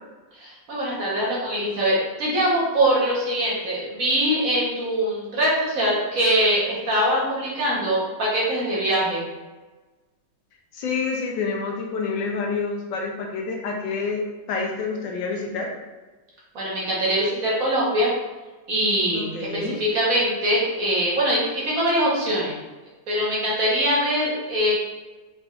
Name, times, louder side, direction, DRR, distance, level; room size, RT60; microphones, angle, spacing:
voice 1, 0.4-9.2 16.5-18.1 18.7-19.5 19.8-22.6 23.1-24.7, equal, 55° right, -5 dB, 1.3 m, -23 dB
voice 2, 10.7-15.7 19.1-19.8, left 4 dB, 85° left, 0 dB, 1.4 m, -28 dB
4.2 x 3.8 x 2.4 m, 1.2 s
omnidirectional pair, 2.0 m